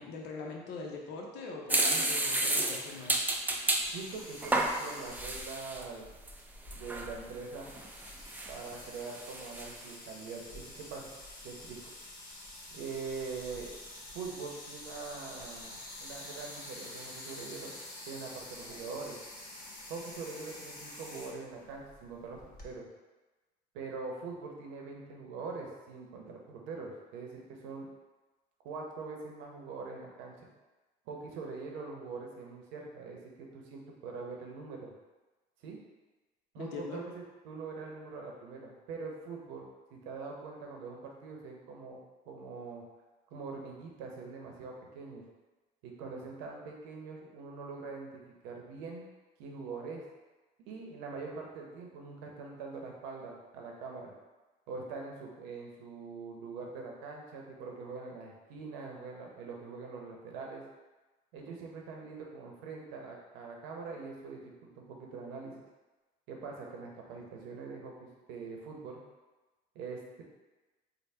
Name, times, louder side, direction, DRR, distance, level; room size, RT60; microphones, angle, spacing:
voice 1, 0.0-3.3 36.6-37.0, left 4 dB, 80° left, -1 dB, 0.6 m, -42 dB
sound 1, 1.7-3.9 4.4-5.8 6.3-6.4 6.7-7.1 7.7-8.8 9.1-9.7, right 2 dB, 10° right, 0.4 m, -31 dB
sound 2, 3.8-22.7, left 1 dB, 50° left, 1.1 m, -48 dB
voice 2, 3.9-6.1 6.7-7.7 8.5-11.1 11.4-11.8 12.7-13.7 14.1-17.7 18.1-19.2 19.9-22.4 22.6-22.9 23.7-27.9 28.6-30.5 31.1-34.9 35.6-35.8 36.5-42.0 42.3-42.8 43.3-45.2 45.8-49.1 49.4-50.1 50.7-54.1 54.7-60.6 61.3-65.6 66.3-69.0 69.7-70.2, right 4 dB, 90° right, 0 dB, 0.7 m, -43 dB
3.4 x 2.1 x 4.2 m, 1.2 s
supercardioid pair, 85°, 18 cm